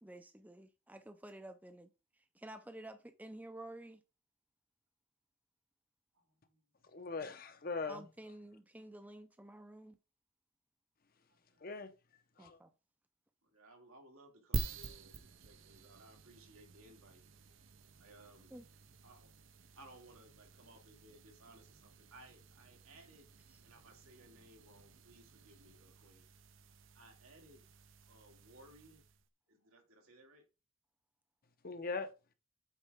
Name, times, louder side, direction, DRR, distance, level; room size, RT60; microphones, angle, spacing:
voice 1, 0.0-1.9 2.3-4.0 7.9-10.0 12.4-12.7 18.5-18.6 23.5-23.6, right 1 dB, 10° right, 0.5 m, -51 dB
voice 2, 6.1-6.6 11.3-11.8 13.4-17.2 18.0-18.5 19.0-19.3 19.8-23.3 23.6-26.2 26.9-27.7 28.1-29.0 29.5-30.4, right 1 dB, 90° right, 2.3 m, -61 dB
voice 3, 6.9-8.1 11.6-11.9 12.4-12.6 31.6-32.1, left 4 dB, 45° left, 0.8 m, -40 dB
sound 1, 14.5-29.3, right 3 dB, 65° right, 0.7 m, -48 dB
8.3 x 4.7 x 3.5 m
head